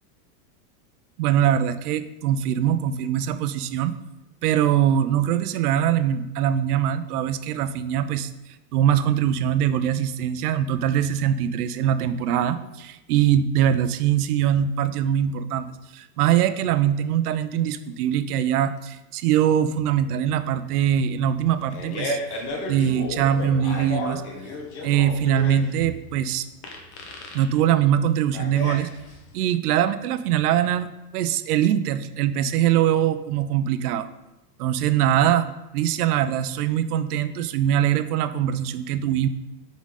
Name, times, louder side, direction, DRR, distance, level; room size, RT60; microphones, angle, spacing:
voice 1, 1.2-4.0 4.4-8.3 8.7-22.2 22.7-24.2 24.8-26.4 27.3-28.9 29.3-34.1 34.6-39.3, right 10 dB, 70° right, 12 dB, 0.6 m, -22 dB
Fart, 21.4-29.4, left 2 dB, 45° left, 1.0 m, -33 dB
5.4 x 3.9 x 4.8 m, 0.96 s
supercardioid pair, 170°, 48 cm